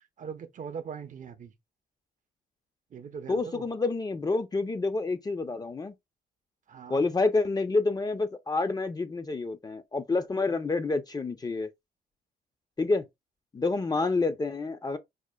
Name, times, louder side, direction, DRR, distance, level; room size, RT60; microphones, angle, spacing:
voice 1, 0.0-1.5 2.9-3.7 6.7-7.0, right 7 dB, 45° right, 0.6 m, -41 dB
voice 2, 3.3-5.9 6.9-11.7 12.8-13.0 13.5-15.0, left 3 dB, 20° left, 0.5 m, -28 dB
4.9 x 2.4 x 2.2 m
cardioid pair, 95°, 18 cm